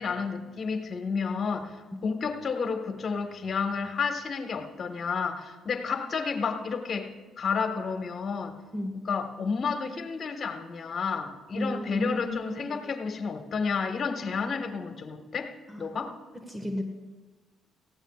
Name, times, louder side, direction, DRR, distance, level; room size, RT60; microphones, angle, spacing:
voice 1, 0.0-7.1 7.4-8.5 8.9-15.5 15.8-16.2, left 5 dB, 50° left, 5 dB, 1.6 m, -31 dB
voice 2, 11.5-12.8 15.7-15.9 16.5-16.8, equal, 15° right, 5 dB, 1.7 m, -33 dB
18.0 x 15.5 x 2.5 m, 1.3 s
hypercardioid pair, 55°, 0 cm